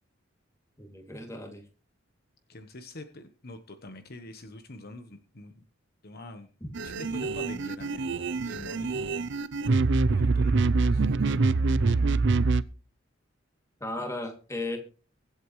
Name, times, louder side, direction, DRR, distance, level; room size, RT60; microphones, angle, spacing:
voice 1, 0.8-1.6 13.8-14.8, left 2 dB, 15° left, 2.6 m, -35 dB
voice 2, 2.5-5.6 6.0-6.5 6.8-9.0 9.6-9.8 10.1-11.1, left 2 dB, 50° left, 1.2 m, -45 dB
sound 1, 6.7-12.6, right 3 dB, 65° right, 0.6 m, -25 dB
23.0 x 8.3 x 3.2 m
head